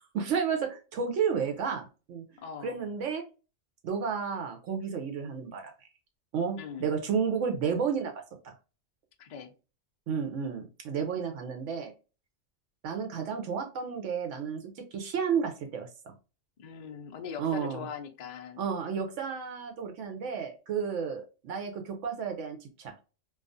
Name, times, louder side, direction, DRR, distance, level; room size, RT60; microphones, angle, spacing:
voice 1, 0.0-2.2 2.6-3.2 3.8-5.7 6.3-8.1 10.1-11.9 12.8-14.6 14.9-16.1 17.4-17.9 18.6-22.9, right 6 dB, 75° right, 0.9 m, -32 dB
voice 2, 2.4-2.8 6.6-6.9 9.2-9.5 16.6-18.6, left 6 dB, 75° left, 0.4 m, -41 dB
2.3 x 2.3 x 2.5 m
omnidirectional pair, 1.3 m